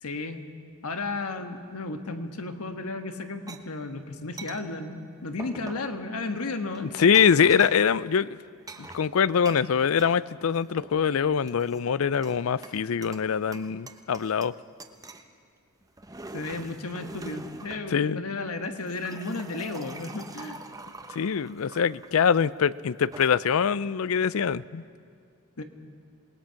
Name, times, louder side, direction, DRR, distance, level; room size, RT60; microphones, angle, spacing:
voice 1, 0.0-0.4 0.8-6.9 16.3-20.6 25.6-25.7, left 3 dB, 85° left, 7 dB, 1.5 m, -34 dB
sound 1, 3.5-3.6 4.4-4.6 5.4-5.9 6.7-7.9 8.7-10.1 10.5-11.1 11.5-12.4 12.6-13.3 13.5-14.5 14.8-15.3 15.8-17.9 18.6-22.1 22.9-23.2, right 3 dB, 15° right, 0.9 m, -44 dB
voice 2, 7.0-8.3 8.8-14.5 17.9-18.2 21.1-24.8, left 7 dB, 65° left, 19 dB, 0.4 m, -23 dB
27.5 x 19.5 x 5.8 m, 2.2 s
head